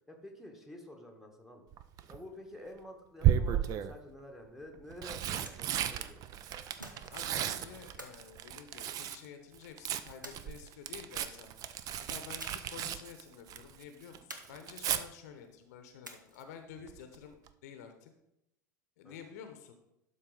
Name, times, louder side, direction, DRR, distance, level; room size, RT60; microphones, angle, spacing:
voice 1, 0.1-1.7 2.1-6.2 19.0-19.2, left 1 dB, 5° right, 1 dB, 1.3 m, -49 dB
Tearing, 1.7-2.2 3.2-4.0 4.7-9.2 9.5-13.8 14.1-15.0 16.9-17.2 17.5-17.6, right 10 dB, 35° right, 0.4 m, -34 dB
sound 1, 4.9-5.8 6.8-7.4 8.0-9.2 10.2-11.0 12.4-12.9 13.1-13.2 14.3-15.0 16.0-16.6, right 1 dB, 85° right, 0.8 m, -50 dB
voice 2, 7.1-11.5 12.0-17.4 17.6-18.1 19.0-19.7, left 7 dB, 60° left, 7 dB, 0.8 m, -50 dB
11.5 x 4.0 x 3.9 m, 0.85 s
figure-of-eight pair, 75°, 10 cm